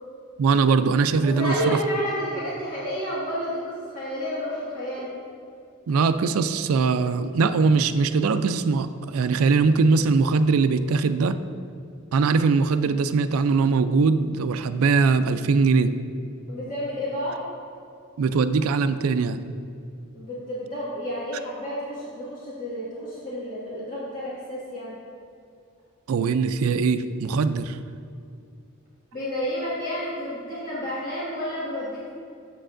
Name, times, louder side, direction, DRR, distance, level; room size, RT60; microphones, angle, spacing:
voice 1, 0.4-1.8 5.9-11.4 12.1-15.9 18.2-19.4 26.1-27.8, right 4 dB, 75° right, 11 dB, 0.4 m, -21 dB
voice 2, 1.2-5.1 16.5-17.4 20.1-24.9 29.1-32.1, equal, 40° left, -9 dB, 1.8 m, -30 dB
8.9 x 7.4 x 2.5 m, 2.4 s
head